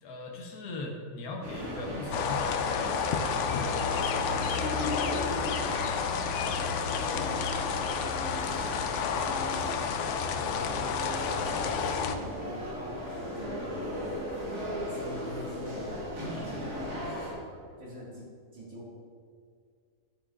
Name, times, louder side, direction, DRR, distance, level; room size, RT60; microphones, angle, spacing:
voice 1, 0.0-7.8 8.9-9.7, left 2 dB, 60° left, 1 dB, 1.5 m, -42 dB
sound 1, 1.4-17.3, equal, 65° right, 2.6 m, -37 dB
sound 2, 2.1-12.1, left 6 dB, 80° left, 0.6 m, -30 dB
voice 2, 10.3-11.6 11.9-18.9, left 1 dB, 45° right, -6 dB, 2.4 m, -45 dB
9.8 x 8.4 x 2.5 m, 2.1 s
omnidirectional pair, 1.8 m